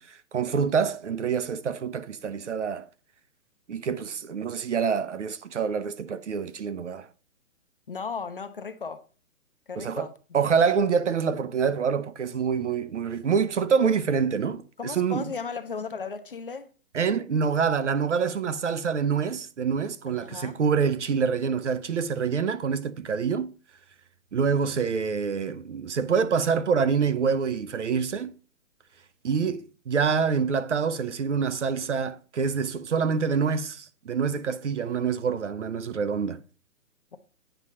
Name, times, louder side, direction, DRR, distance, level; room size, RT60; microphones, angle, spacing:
voice 1, 0.0-2.9 3.7-7.1 9.8-10.1 10.3-15.3 16.9-23.5 24.3-28.4 29.2-36.4, right 6 dB, 55° right, 0.8 m, -26 dB
voice 2, 7.9-9.0 9.7-10.1 13.8-13.9 14.8-16.7 20.1-20.6, left 5 dB, 40° left, 0.7 m, -36 dB
9.1 x 5.0 x 4.2 m
hypercardioid pair, 180°, 42 cm